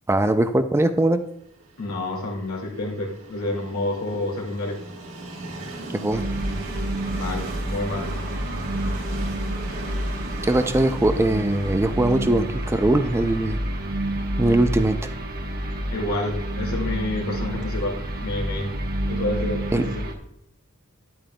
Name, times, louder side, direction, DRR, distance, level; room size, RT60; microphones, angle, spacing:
voice 1, 0.1-1.2 5.9-6.2 10.4-13.6 14.4-15.0 19.7-19.8, right 1 dB, 10° right, 9 dB, 0.4 m, -21 dB
Train, 1.6-17.4, right 2 dB, 65° right, 1.5 m, -40 dB
voice 2, 1.8-4.8 7.1-8.1 15.9-17.9 18.2-18.7 19.1-20.1, left 2 dB, 75° left, 0 dB, 2.3 m, -29 dB
sound 1, 6.1-20.1, right 1 dB, 45° right, 1.0 m, -29 dB
9.4 x 8.6 x 2.2 m, 0.78 s
head